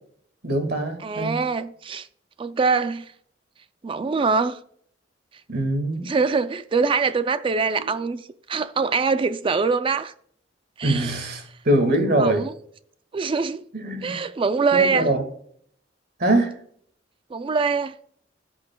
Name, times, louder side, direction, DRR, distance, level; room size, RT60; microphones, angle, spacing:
voice 1, 0.4-1.4 5.5-6.1 7.8-7.9 10.8-12.4 13.7-14.2 14.7-15.2 16.2-16.5, right 1 dB, 55° right, 1.8 m, -23 dB
voice 2, 1.0-2.1 2.4-3.1 3.8-4.6 6.0-8.2 8.5-10.1 10.8-11.1 12.2-12.5 13.1-13.6 14.0-15.1 17.3-17.9, right 4 dB, 30° right, 0.3 m, -23 dB
15.0 x 6.2 x 2.2 m
head